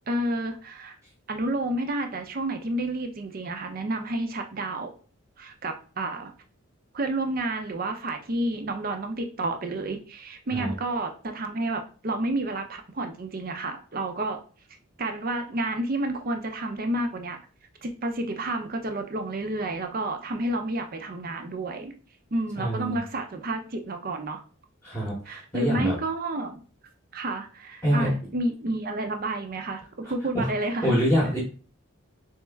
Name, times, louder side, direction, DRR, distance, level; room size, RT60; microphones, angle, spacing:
voice 1, 0.1-1.0 1.3-4.9 5.4-6.3 6.9-14.4 15.0-17.4 17.8-21.9 22.3-24.4 25.3-26.6 27.1-31.0, right 2 dB, 45° right, 6 dB, 0.6 m, -30 dB
voice 2, 22.6-23.0 24.8-25.9 27.8-28.1 30.3-30.4 30.8-31.4, equal, 10° left, -5 dB, 0.9 m, -25 dB
3.5 x 3.1 x 3.4 m, 0.38 s
head